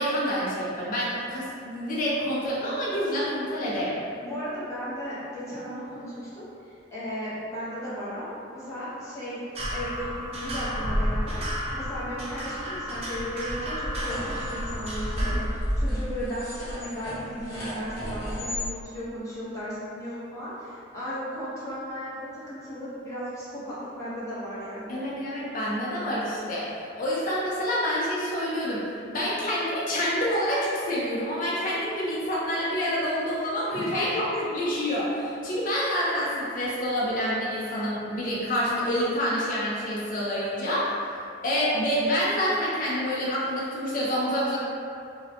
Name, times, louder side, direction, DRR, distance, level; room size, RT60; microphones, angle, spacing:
voice 1, 0.0-4.0 24.9-28.8 29.1-40.9 41.4-44.6, equal, 45° left, -7 dB, 0.4 m, -27 dB
voice 2, 4.2-11.4 11.7-25.1 33.6-34.4, equal, 15° left, -11 dB, 0.7 m, -35 dB
sound 1, 9.5-15.4, equal, 35° right, 0.4 m, -31 dB
sound 2, 13.8-18.7, equal, 80° left, 0.8 m, -32 dB
2.6 x 2.0 x 2.6 m, 2.6 s
head